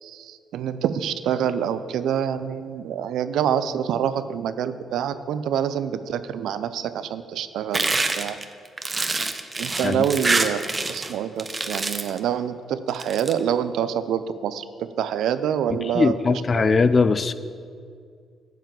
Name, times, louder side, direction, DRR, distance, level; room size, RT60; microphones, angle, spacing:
voice 1, 0.0-8.4 9.6-10.6 10.9-17.1, right 9 dB, 75° right, 12 dB, 0.5 m, -26 dB
sound 1, 7.7-11.1 11.4-12.2 12.9-13.3, right 3 dB, 30° right, 0.9 m, -25 dB
voice 2, 15.7-17.3, left 4 dB, 40° left, 14 dB, 0.5 m, -20 dB
9.2 x 5.7 x 7.2 m, 2.2 s
supercardioid pair, 55°, 0 cm